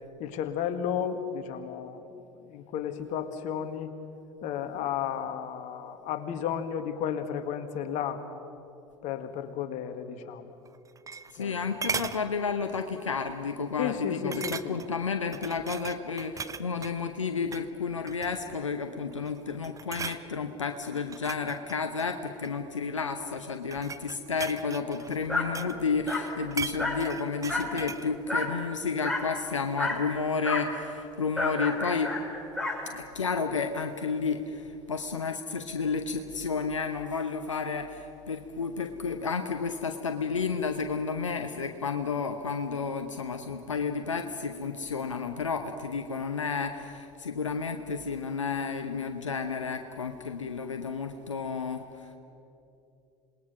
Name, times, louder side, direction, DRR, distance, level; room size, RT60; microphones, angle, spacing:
voice 1, 0.2-3.9 4.4-8.3 9.0-10.6 11.4-11.7 13.8-14.8, left 8 dB, 50° left, 8 dB, 1.7 m, -33 dB
sound 1, 10.7-11.5 11.8-12.2 12.7-13.0 13.3-13.4 14.3-15.0 15.3-17.0 17.4-17.7 18.1-18.6 19.1-19.4 19.6-20.2 21.0-22.6 23.4-25.8 26.1-28.1 28.4-28.5, right 5 dB, 20° right, 0.8 m, -38 dB
voice 2, 11.3-32.2 32.9-52.2, left 5 dB, 85° left, 6 dB, 0.9 m, -31 dB
Dog, 25.3-25.5 26.1-26.3 26.8-27.1 27.5-27.8 28.3-28.5 29.0-29.3 29.8-30.1 30.4-30.7 31.4-32.8, left 2 dB, ahead, 4.6 m, -30 dB
27.0 x 20.0 x 6.2 m, 2.8 s
figure-of-eight pair, 70°, 16 cm